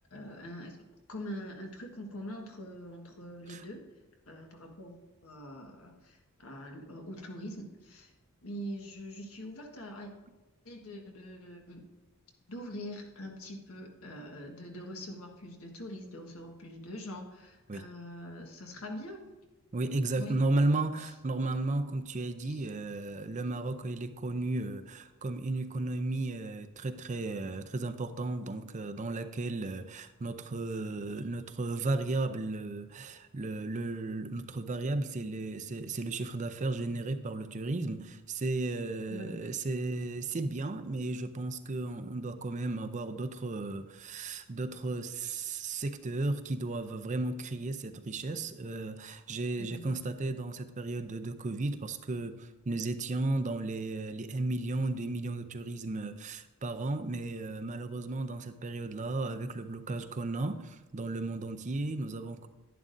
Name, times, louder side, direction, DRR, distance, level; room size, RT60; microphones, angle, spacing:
voice 1, 0.1-0.8 1.1-3.8 4.3-8.1 8.4-10.1 10.6-11.9 12.5-19.2 20.2-20.4 22.4-22.6 39.1-39.4 49.6-50.0, equal, 80° left, 1.5 m, -43 dB
voice 2, 19.7-62.5, right 2 dB, 35° right, 0.5 m, -34 dB
11.0 x 10.5 x 2.6 m
head